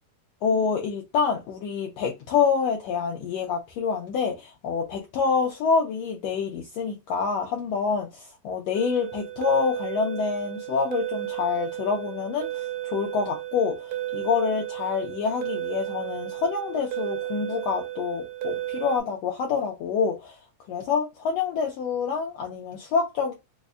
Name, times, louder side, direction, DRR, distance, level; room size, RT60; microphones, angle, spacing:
voice 1, 0.4-20.4 20.7-23.3, left 5 dB, 85° left, 1.4 m, -27 dB
sound 1, 8.7-19.0, right 14 dB, 90° right, 2.2 m, -33 dB
5.2 x 2.1 x 2.3 m
omnidirectional pair, 3.7 m